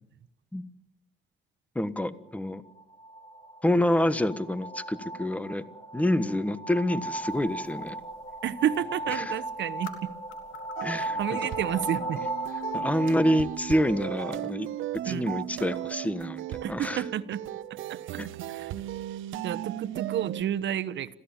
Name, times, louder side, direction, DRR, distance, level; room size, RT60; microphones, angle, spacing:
voice 1, 1.7-2.6 3.6-5.6 5.9-7.9 9.1-9.3 10.8-11.4 12.7-14.7 15.0-17.0 18.2-18.3, left 1 dB, 5° left, 14 dB, 1.4 m, -27 dB
sound 1, 2.7-14.3, right 2 dB, 25° left, 2.2 m, -37 dB
sound 2, 7.2-13.3, left 8 dB, 90° left, 3.2 m, -51 dB
voice 2, 8.4-10.1 11.0-12.2 15.0-15.3 16.6-17.4 17.9-18.2 18.5-18.7 19.4-21.2, right 10 dB, 70° right, 15 dB, 1.1 m, -31 dB
sound 3, 10.8-20.4, right 14 dB, 85° right, 0.9 m, -36 dB
26.5 x 16.5 x 7.3 m, 0.80 s
cardioid pair, 90°, 20 cm